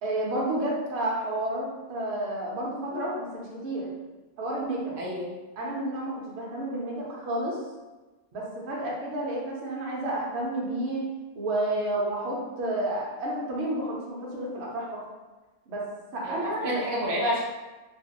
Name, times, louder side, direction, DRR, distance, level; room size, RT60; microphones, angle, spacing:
voice 1, 0.0-3.9 4.4-5.0 5.6-7.6 8.3-11.0 11.3-15.0 15.7-15.9 16.1-16.8, right 1 dB, 55° right, -4 dB, 0.9 m, -30 dB
voice 2, 5.0-5.3 16.2-17.4, equal, 40° right, -5 dB, 0.3 m, -29 dB
2.9 x 2.5 x 2.8 m, 1.2 s
omnidirectional pair, 1.5 m